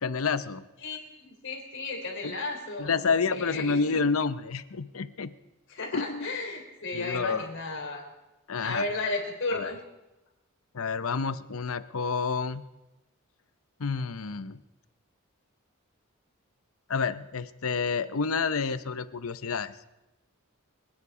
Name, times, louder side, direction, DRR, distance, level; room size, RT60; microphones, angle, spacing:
voice 1, 0.0-0.6 2.2-2.3 2.8-5.3 5.9-6.3 6.9-7.5 8.5-8.8 9.5-9.7 10.7-12.6 13.8-14.6 16.9-19.7, left 5 dB, 75° left, 13 dB, 0.7 m, -29 dB
voice 2, 0.8-4.0 5.7-8.0 8.6-9.8, left 3 dB, 60° left, 1 dB, 3.8 m, -34 dB
25.0 x 9.7 x 4.9 m, 1.0 s
head